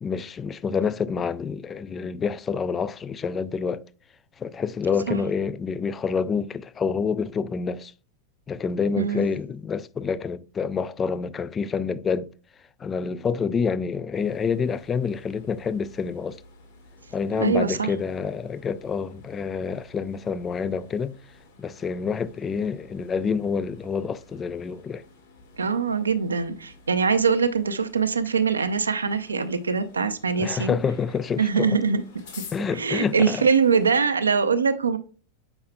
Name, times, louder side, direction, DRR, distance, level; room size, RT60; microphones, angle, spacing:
voice 1, 0.0-3.8 4.4-7.9 8.5-12.3 12.8-16.4 17.1-21.2 21.6-25.0 30.4-31.8 32.5-33.5, left 5 dB, 20° left, 0.3 m, -27 dB
voice 2, 9.0-9.3 17.3-17.9 25.6-30.8 31.4-32.0 32.4-32.5 32.7-35.0, right 5 dB, 75° right, 0.6 m, -23 dB
sound 1, 14.1-34.0, left 3 dB, 60° left, 2.4 m, -51 dB
7.9 x 5.5 x 2.2 m
figure-of-eight pair, 90°, 0 cm